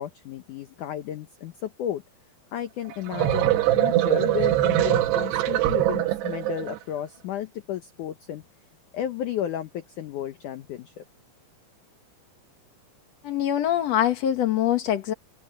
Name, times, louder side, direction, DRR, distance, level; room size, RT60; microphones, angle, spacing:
voice 1, 0.0-2.0 2.5-8.4 8.9-11.0, left 10 dB, 85° left, 1.7 m, -33 dB
sound 1, 2.9-6.8, right 14 dB, 75° right, 3.3 m, -23 dB
voice 2, 13.2-15.1, left 11 dB, 65° left, 1.7 m, -23 dB
omnidirectional pair, 5.0 m